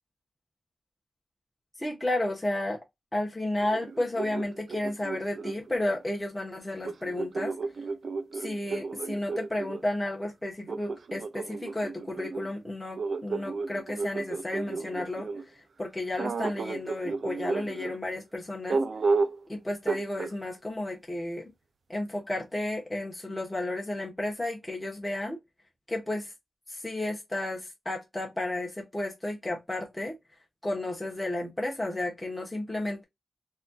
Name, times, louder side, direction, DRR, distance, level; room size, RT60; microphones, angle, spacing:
voice 1, 1.8-2.8 3.1-7.5 8.3-15.3 15.8-18.8 19.5-21.5 21.9-25.4 25.9-26.3 26.7-30.2 30.6-33.0, left 1 dB, 10° left, 1.1 m, -32 dB
sound 1, 3.6-6.0 6.8-9.8 10.7-15.5 16.2-17.9 18.7-19.4 19.9-20.3, right 4 dB, 65° right, 0.6 m, -32 dB
4.2 x 2.8 x 2.3 m
wide cardioid pair, 95°, 0 cm